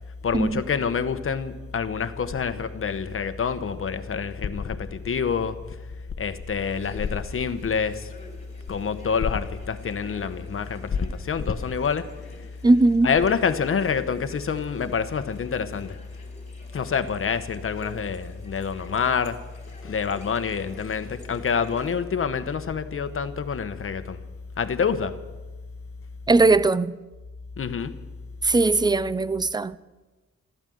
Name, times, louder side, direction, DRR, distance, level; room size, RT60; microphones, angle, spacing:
voice 1, 0.2-5.6 6.2-8.1 8.7-12.2 13.0-16.0 16.7-19.5 19.8-24.2 24.6-25.2 27.6-28.0, left 6 dB, 45° left, 1.0 m, -27 dB
sound 1, 6.6-21.9, left 1 dB, 25° left, 3.9 m, -50 dB
voice 2, 12.6-13.1 26.3-27.0 28.4-29.8, right 3 dB, 15° right, 0.4 m, -19 dB
14.0 x 13.0 x 7.8 m
wide cardioid pair, 120°, 29 cm